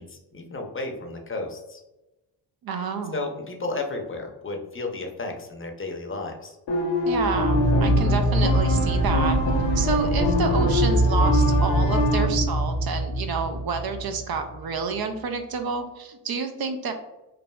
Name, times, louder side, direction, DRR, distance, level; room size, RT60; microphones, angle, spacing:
voice 1, 0.0-1.8 3.1-6.6, left 2 dB, 30° left, 2 dB, 0.6 m, -33 dB
voice 2, 2.6-3.3 7.1-9.4 9.7-16.9, right 5 dB, 55° right, 6 dB, 0.5 m, -29 dB
sound 1, 6.7-12.3, left 1 dB, 65° left, 0.8 m, -26 dB
sound 2, 7.1-14.4, right 1 dB, 75° right, 1.1 m, -23 dB
3.2 x 2.5 x 2.2 m, 0.99 s
supercardioid pair, 45°, 45 cm